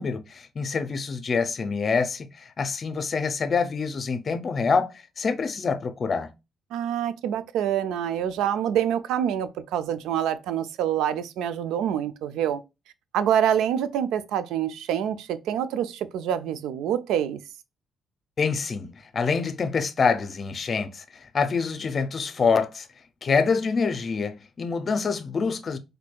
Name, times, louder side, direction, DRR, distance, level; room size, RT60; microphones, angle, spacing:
voice 1, 0.0-4.9 5.2-6.3 18.4-18.9 19.1-22.9 23.2-25.8, left 5 dB, 45° left, 0.5 m, -26 dB
voice 2, 6.7-12.6 13.1-17.4, right 9 dB, 90° right, 0.3 m, -26 dB
4.3 x 2.6 x 2.2 m
cardioid pair, 90°, 0 cm